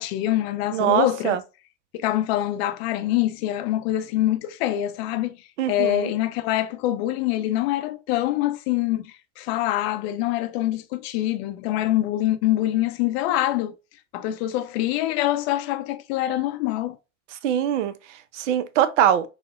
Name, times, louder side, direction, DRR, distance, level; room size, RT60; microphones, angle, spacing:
voice 1, 0.0-1.4 1.9-5.4 5.7-13.8 14.1-17.0, left 14 dB, 55° left, 0.5 m, -25 dB
voice 2, 0.7-1.4 5.6-6.1 17.3-19.3, right 10 dB, 70° right, 0.5 m, -23 dB
4.1 x 2.1 x 2.3 m
hypercardioid pair, 80°, 38 cm